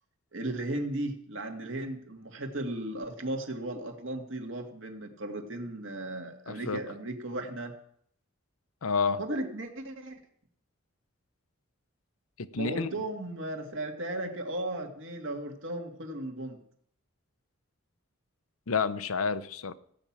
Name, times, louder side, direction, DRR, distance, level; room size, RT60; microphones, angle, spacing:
voice 1, 0.3-7.7 9.2-10.2 12.5-16.6, right 1 dB, 65° right, 4 dB, 2.1 m, -36 dB
voice 2, 6.5-6.8 8.8-9.2 12.4-12.9 18.7-19.7, left 5 dB, 85° left, 13 dB, 0.8 m, -29 dB
15.5 x 6.0 x 8.7 m, 0.67 s
head